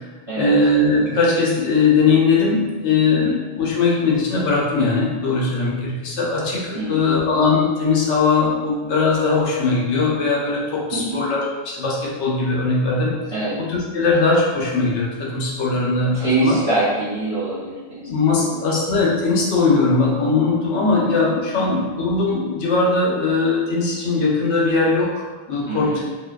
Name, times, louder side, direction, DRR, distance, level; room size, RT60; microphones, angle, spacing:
voice 1, 0.4-13.1 13.6-16.6 18.1-25.2 25.5-25.9, left 3 dB, 85° left, -4 dB, 0.9 m, -20 dB
voice 2, 6.7-7.1 10.9-11.2 13.3-13.6 16.1-18.7 21.5-21.8 25.7-26.0, right 2 dB, 40° right, -11 dB, 0.5 m, -25 dB
2.5 x 2.2 x 2.2 m, 1.3 s
omnidirectional pair, 1.2 m